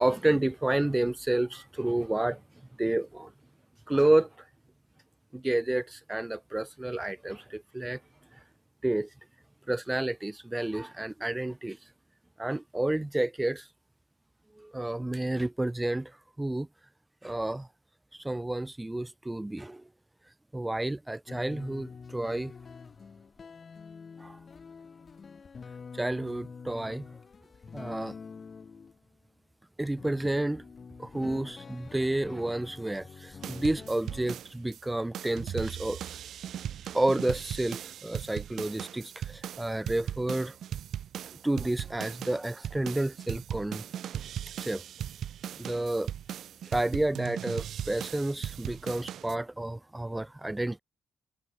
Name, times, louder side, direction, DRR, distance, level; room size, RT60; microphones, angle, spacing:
voice 1, 0.0-2.4 2.8-3.3 3.9-4.3 5.3-8.0 8.8-9.1 9.7-11.8 12.4-13.7 14.6-16.1 16.4-16.7 17.2-17.7 18.1-19.8 20.5-22.5 24.2-24.4 25.9-27.1 27.7-28.1 29.8-30.6 31.0-36.0 36.9-40.6 41.4-43.9 44.6-44.8 45.6-46.1 46.7-50.8, right 1 dB, 10° right, 1.6 m, -30 dB
sound 1, 21.3-29.1 29.9-34.3, left 5 dB, 40° left, 1.5 m, -46 dB
sound 2, 33.4-34.8 35.1-49.4, right 10 dB, 70° right, 0.5 m, -38 dB
cardioid pair, 100°, 0 cm